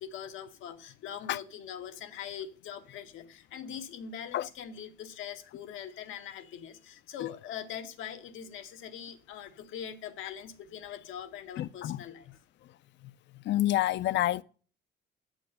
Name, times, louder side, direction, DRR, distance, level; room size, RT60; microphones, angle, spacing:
voice 1, 0.0-12.4, left 9 dB, 90° left, 1.0 m, -42 dB
voice 2, 11.6-12.0 13.5-14.4, left 14 dB, 65° left, 0.4 m, -28 dB
7.6 x 6.4 x 5.4 m
cardioid pair, 90°, 20 cm